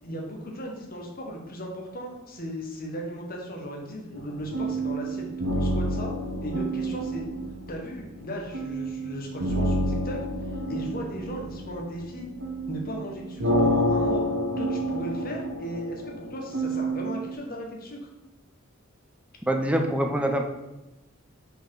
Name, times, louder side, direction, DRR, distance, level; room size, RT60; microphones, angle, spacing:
voice 1, 0.0-6.1 6.4-7.3 7.7-12.3 12.7-14.2 14.6-18.1, equal, 45° left, 0 dB, 1.2 m, -36 dB
sound 1, 4.1-17.3, right 1 dB, 70° right, 1.2 m, -29 dB
voice 2, 19.4-20.5, right 1 dB, 5° right, 3 dB, 0.5 m, -24 dB
5.1 x 4.3 x 4.7 m, 0.99 s
head